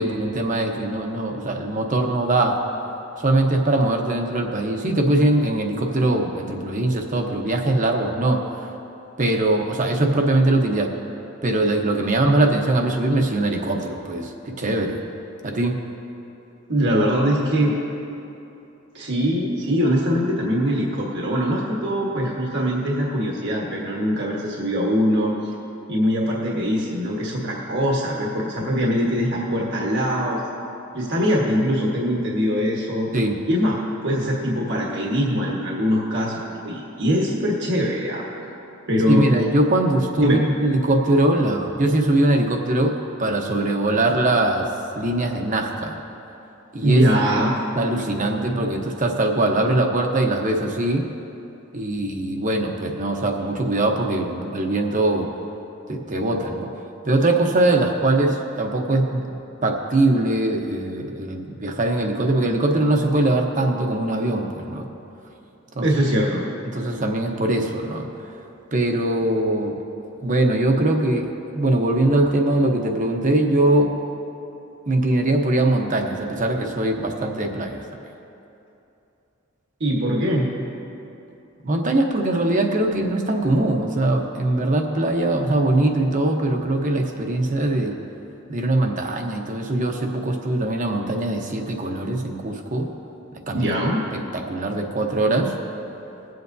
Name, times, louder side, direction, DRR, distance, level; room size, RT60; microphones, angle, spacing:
voice 1, 0.0-2.6 3.2-8.7 9.2-10.9 11.4-15.0 15.4-15.8 33.1-33.4 39.1-44.6 45.0-45.9 46.7-47.0 47.7-51.0 51.7-55.3 55.9-56.7 57.0-59.3 59.6-64.9 65.7-65.9 66.7-68.1 68.7-69.7 70.2-71.3 71.5-73.9 74.9-77.8 81.6-87.9 88.5-92.9 93.5-93.7 94.1-95.5, right 2 dB, 40° right, 2 dB, 0.9 m, -21 dB
voice 2, 16.7-17.7 18.9-25.3 25.9-30.5 30.9-33.1 33.5-33.8 34.0-38.2 38.9-39.3 40.2-40.4 46.8-47.6 65.8-66.4 79.8-80.5 93.5-94.0, equal, 60° right, -3 dB, 1.3 m, -22 dB
21.0 x 7.9 x 2.7 m, 2.8 s
head